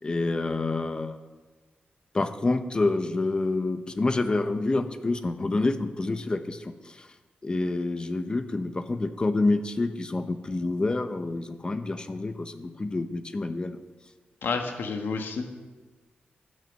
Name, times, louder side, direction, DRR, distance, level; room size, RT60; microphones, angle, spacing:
voice 1, 0.0-1.2 2.1-7.1 7.4-13.8, left 2 dB, 25° left, 9 dB, 0.8 m, -28 dB
voice 2, 14.4-15.5, left 4 dB, 85° left, 4 dB, 1.7 m, -30 dB
15.5 x 10.5 x 5.5 m, 1.3 s
wide cardioid pair, 175°, 4 cm